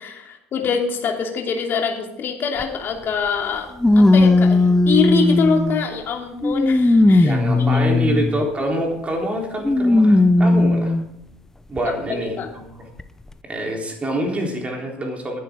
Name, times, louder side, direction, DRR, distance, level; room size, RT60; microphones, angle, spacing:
voice 1, 0.0-7.8 11.8-12.5, left 6 dB, 40° left, 2 dB, 2.9 m, -24 dB
sound 1, 2.6-2.7 3.8-5.9 6.4-8.5 9.6-11.1 11.8-11.9 13.0-13.1, left 2 dB, 10° left, 0.9 m, -16 dB
voice 2, 7.2-11.0 11.7-12.7 13.4-15.4, equal, 25° right, 1 dB, 3.8 m, -26 dB
18.5 x 11.0 x 3.8 m, 0.81 s
figure-of-eight pair, 65°, 6 cm